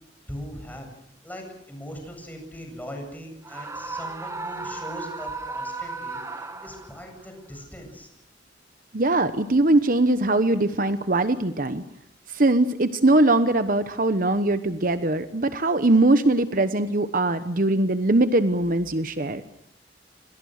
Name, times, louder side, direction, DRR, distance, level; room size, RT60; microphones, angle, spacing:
voice 1, 0.3-0.9 1.2-8.1, equal, 10° left, 3 dB, 8.0 m, -40 dB
Screaming, 3.4-7.1, right 3 dB, 15° right, 1.7 m, -35 dB
voice 2, 8.9-11.8 12.3-19.4, right 2 dB, 50° right, 11 dB, 1.0 m, -21 dB
27.0 x 26.5 x 6.6 m, 0.73 s
head